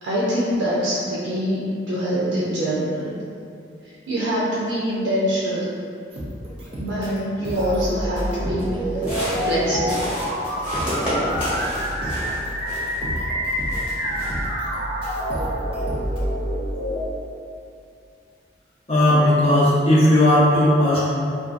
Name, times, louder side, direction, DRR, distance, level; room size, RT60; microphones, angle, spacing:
voice 1, 0.0-3.1 3.8-5.7 6.8-9.0 9.3-10.1, equal, 90° right, -8 dB, 0.4 m, -24 dB
sound 1, 6.1-7.2 7.4-8.8 9.0-9.5 9.7-10.0 10.3-14.8 15.0-16.2, equal, 30° right, 0.4 m, -34 dB
sound 2, 7.5-17.0, equal, 65° left, 0.9 m, -27 dB
sound 3, 8.9-13.1 13.5-14.5, equal, 5° right, 0.8 m, -30 dB
voice 2, 18.9-21.1, left 1 dB, 35° left, -8 dB, 0.5 m, -16 dB
2.6 x 2.2 x 2.3 m, 2.4 s
head